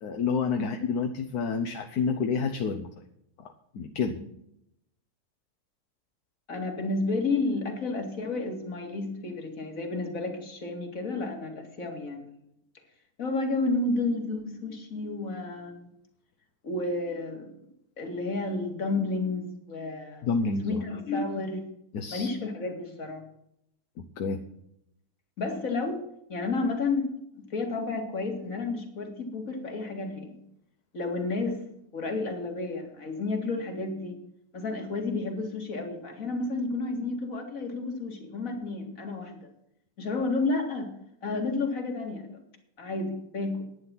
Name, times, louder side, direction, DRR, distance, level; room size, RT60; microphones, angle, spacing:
voice 1, 0.0-2.9 3.7-4.2 20.2-20.8 21.9-22.3 24.2-24.4, left 5 dB, 75° left, 6 dB, 1.5 m, -28 dB
voice 2, 6.5-12.4 13.2-15.9 16.6-17.5 18.0-20.3 20.6-21.6 22.1-23.2 25.4-26.0 26.3-27.1 27.3-30.4 30.9-31.6 31.9-34.2 34.5-39.4 40.0-40.9 41.2-42.4 42.8-43.7, left 3 dB, 60° left, 4 dB, 2.5 m, -31 dB
11.0 x 9.7 x 5.9 m, 0.78 s
omnidirectional pair, 1.6 m